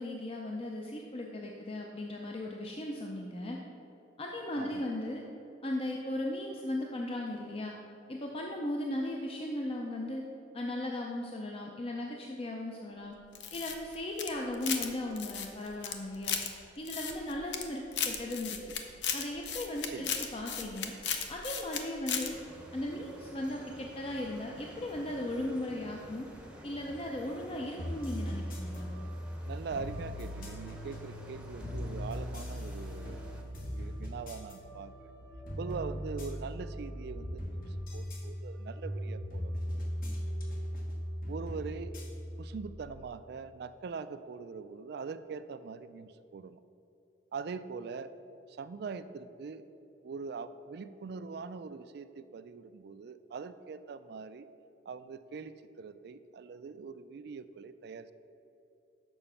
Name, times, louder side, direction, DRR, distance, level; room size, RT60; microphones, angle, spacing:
voice 1, 0.0-3.6 4.2-5.2 5.6-7.7 8.1-10.2 10.5-13.1 13.5-16.4 16.8-18.6 19.1-20.9 21.3-22.3 22.7-26.3 26.6-28.9, left 1 dB, 35° left, 0 dB, 0.6 m, -37 dB
voice 2, 4.5-4.8 19.9-20.1 29.4-33.2 33.7-35.1 35.6-39.5 41.3-41.9 42.4-46.6 47.3-48.1 48.5-49.6 50.0-54.5 54.9-58.1, right 5 dB, 65° right, 13 dB, 0.4 m, -42 dB
sound 1, 13.3-14.9 15.2-16.5 16.9-17.6 17.9-21.8 22.1-22.3, left 7 dB, 85° left, 0.7 m, -35 dB
sound 2, 22.3-33.4, equal, 5° right, 0.8 m, -51 dB
sound 3, 27.8-43.0, equal, 55° left, 1.2 m, -39 dB
7.0 x 5.8 x 5.6 m, 2.9 s
head